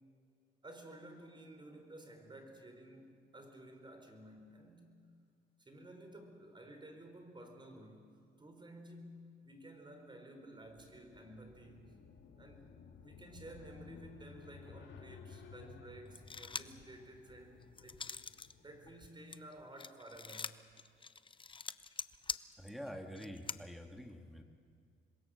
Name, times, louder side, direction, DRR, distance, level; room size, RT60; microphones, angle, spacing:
voice 1, 0.6-5.0 5.6-8.0 8.4-12.0 12.4-12.7 13.0-18.0 18.6-20.6, right 1 dB, 25° right, 5 dB, 4.7 m, -53 dB
sound 1, 10.6-19.4, left 6 dB, 70° left, 2.2 m, -57 dB
sound 2, 16.1-16.8 17.3-18.5 18.9-23.6, left 5 dB, 25° left, 0.7 m, -44 dB
voice 2, 22.6-24.4, equal, ahead, 3 dB, 2.2 m, -47 dB
27.0 x 22.0 x 6.6 m, 2.3 s
cardioid pair, 90°, 20 cm